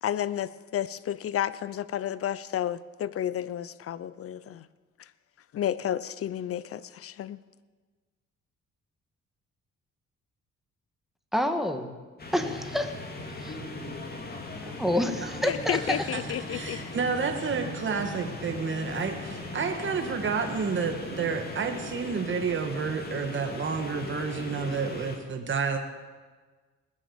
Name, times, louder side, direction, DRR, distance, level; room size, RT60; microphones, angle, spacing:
voice 1, 0.0-4.7 5.5-7.4 15.4-16.9, left 10 dB, 50° left, 17 dB, 0.6 m, -31 dB
voice 2, 11.3-11.9 12.3-12.9 13.4-13.6 14.6-16.0, left 1 dB, ahead, 6 dB, 1.6 m, -28 dB
sound 1, 12.2-25.2, left 2 dB, 30° left, 2.4 m, -39 dB
voice 3, 15.7-16.2 16.5-25.8, right 5 dB, 40° right, 5 dB, 1.7 m, -30 dB
20.0 x 7.4 x 7.2 m, 1.4 s
cardioid pair, 90°, 30 cm